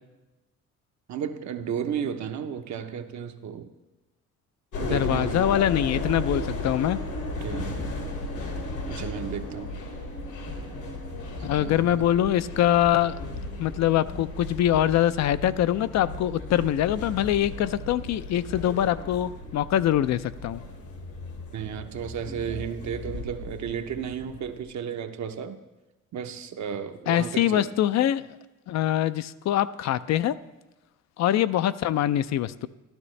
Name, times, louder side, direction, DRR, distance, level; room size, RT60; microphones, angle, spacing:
voice 1, 1.1-3.7 4.7-5.4 7.4-7.8 8.9-9.7 11.3-12.0 21.5-25.6 26.1-27.7, right 8 dB, 65° right, 6 dB, 0.8 m, -33 dB
sound 1, 4.7-24.6, left 2 dB, 85° left, 2.1 m, -35 dB
voice 2, 4.8-7.0 11.4-13.2 13.6-20.6 27.1-28.3 28.7-30.4 31.2-32.7, left 12 dB, 60° left, 14 dB, 0.4 m, -24 dB
12.5 x 12.0 x 3.2 m, 1.1 s
cardioid pair, 90°, 30 cm